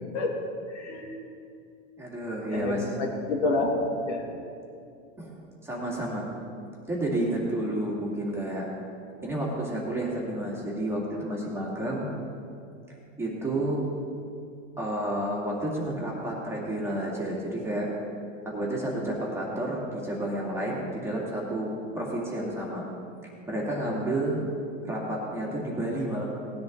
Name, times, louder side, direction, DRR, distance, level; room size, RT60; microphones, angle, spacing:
voice 1, 0.7-1.2 2.5-3.7 4.0-4.3, left 3 dB, 65° left, -1 dB, 2.8 m, -28 dB
voice 2, 2.0-3.0 5.2-5.3 5.6-6.3 6.9-8.7 9.2-12.1 13.2-13.9 14.8-17.9 18.4-22.9 23.5-24.4 24.8-26.2, right 1 dB, 5° right, -4 dB, 2.4 m, -30 dB
18.5 x 10.5 x 3.9 m, 2.5 s
supercardioid pair, 140°, 38 cm